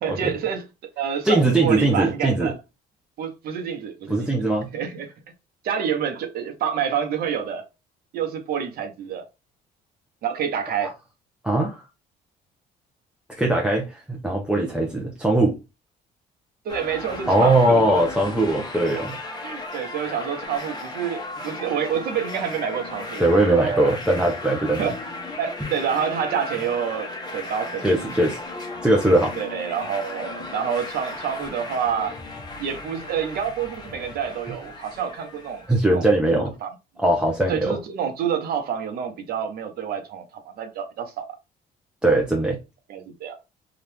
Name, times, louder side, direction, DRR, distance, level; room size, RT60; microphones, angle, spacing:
voice 1, 0.0-2.5 3.2-4.3 4.7-5.1 5.6-7.6 8.1-9.2 10.2-10.9 16.6-18.0 19.4-23.9 24.8-25.0 25.4-28.1 29.4-32.1 32.6-36.0 36.3-36.7 37.5-41.3 42.9-43.4, right 8 dB, 65° right, 0.9 m, -28 dB
voice 2, 1.2-2.5 4.1-4.7 10.8-10.9 11.4-11.8 13.4-15.6 17.3-19.2 23.2-24.9 27.8-28.4 28.8-29.4 35.7-36.6 37.0-37.8 42.0-42.6, right 1 dB, 5° right, 0.6 m, -20 dB
sound 1, 16.7-35.8, left 2 dB, 25° left, 0.9 m, -36 dB
2.8 x 2.4 x 3.3 m
cardioid pair, 110°, 17 cm